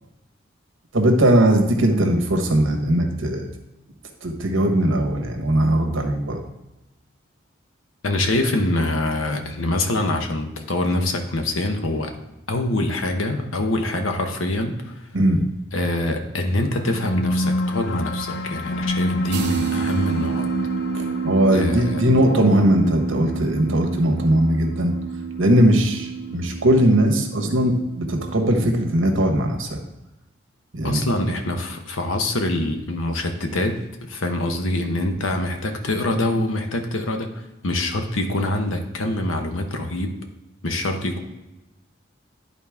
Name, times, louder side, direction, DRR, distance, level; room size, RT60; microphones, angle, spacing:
voice 1, 0.9-3.5 4.2-6.4 15.1-15.4 20.9-24.9 25.4-29.8 30.7-31.0, right 1 dB, 80° right, 4 dB, 1.2 m, -19 dB
voice 2, 8.0-12.1 12.5-15.1 15.7-20.5 21.5-22.1 30.8-40.1 40.6-41.2, left 1 dB, 90° left, 5 dB, 1.0 m, -25 dB
sound 1, 16.7-27.6, left 1 dB, 60° left, 0.5 m, -30 dB
sound 2, 19.3-28.9, right 7 dB, 55° right, 0.6 m, -30 dB
11.0 x 4.1 x 3.5 m, 0.99 s
head